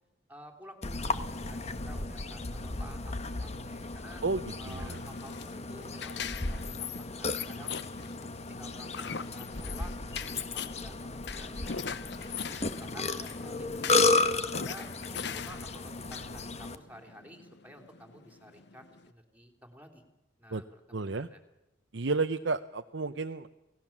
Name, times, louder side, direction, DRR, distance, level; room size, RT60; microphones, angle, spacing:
voice 1, 0.3-4.2 4.6-6.7 7.2-7.8 8.1-8.2 8.5-9.9 10.2-12.4 12.7-14.1 14.6-20.0 20.4-21.4, equal, 10° right, 6 dB, 3.5 m, -52 dB
Burping eructation, 0.8-16.8, left 3 dB, 35° left, 1.3 m, -33 dB
sound 1, 3.9-19.1, left 7 dB, 60° left, 0.9 m, -42 dB
voice 2, 4.7-5.0 20.5-20.6 20.9-21.3 21.9-23.5, right 3 dB, 65° right, 7 dB, 0.8 m, -31 dB
29.0 x 18.5 x 7.4 m, 0.96 s
head